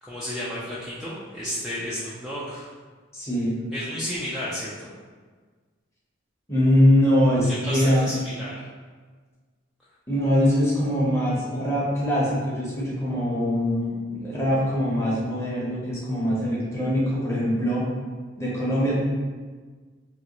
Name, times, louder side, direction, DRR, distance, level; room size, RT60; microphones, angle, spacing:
voice 1, 0.0-2.7 3.7-4.9 7.5-8.5, equal, ahead, -10 dB, 0.4 m, -32 dB
voice 2, 3.1-3.5 6.5-8.1 10.1-17.8 18.4-18.9, equal, 15° left, -7 dB, 0.8 m, -22 dB
3.0 x 2.5 x 2.9 m, 1.5 s
head